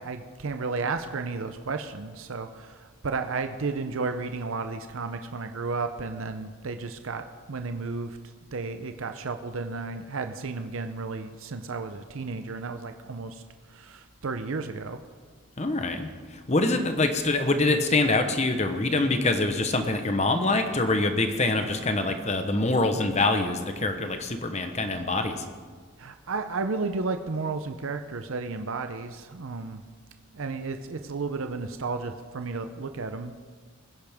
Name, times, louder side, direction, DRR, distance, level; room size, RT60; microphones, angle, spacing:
voice 1, 0.0-2.7 3.0-8.2 8.5-13.4 13.7-15.0 26.0-29.8 30.3-33.3, right 4 dB, 65° right, 7 dB, 0.6 m, -33 dB
voice 2, 15.6-25.4, left 2 dB, 30° left, 7 dB, 0.9 m, -25 dB
20.5 x 10.5 x 3.6 m, 1.5 s
head